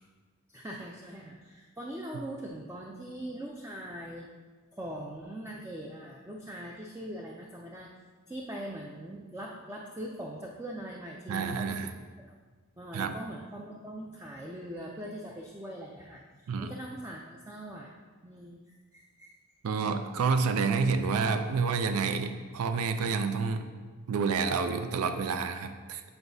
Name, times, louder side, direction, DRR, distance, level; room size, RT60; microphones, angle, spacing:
voice 1, 0.5-4.3 4.7-7.9 8.3-11.9 12.3-12.4 12.8-17.9 18.2-19.4, right 1 dB, 10° right, -1 dB, 0.3 m, -41 dB
voice 2, 11.3-11.9 12.9-13.1 16.5-16.7 19.6-23.7 24.1-26.0, right 5 dB, 85° right, 8 dB, 0.4 m, -29 dB
7.9 x 4.7 x 2.6 m, 1.4 s
head